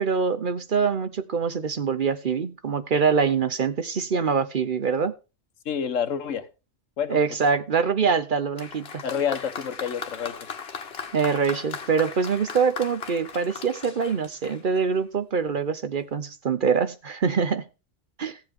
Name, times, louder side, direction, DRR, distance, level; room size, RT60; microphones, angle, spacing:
voice 1, 0.0-5.1 7.1-9.0 11.1-17.6 18.2-18.4, right 5 dB, 50° right, 0.8 m, -24 dB
voice 2, 5.6-6.5 7.0-7.2 9.0-10.4, left 7 dB, 85° left, 1.3 m, -28 dB
Applause, 8.6-15.0 15.9-16.0, left 6 dB, 55° left, 1.3 m, -38 dB
15.5 x 7.4 x 3.6 m
omnidirectional pair, 1.3 m